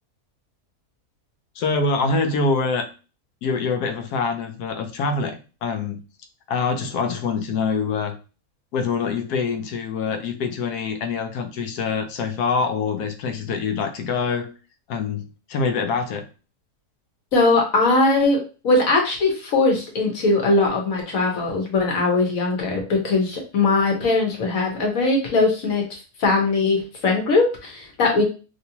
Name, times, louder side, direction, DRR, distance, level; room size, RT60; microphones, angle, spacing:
voice 1, 1.6-2.9 3.4-6.0 6.5-8.2 8.7-14.5 14.9-16.3, left 4 dB, 85° left, 6 dB, 1.2 m, -25 dB
voice 2, 17.3-28.2, left 3 dB, 65° left, 1 dB, 1.4 m, -20 dB
3.0 x 2.9 x 2.8 m, 0.34 s
omnidirectional pair, 1.6 m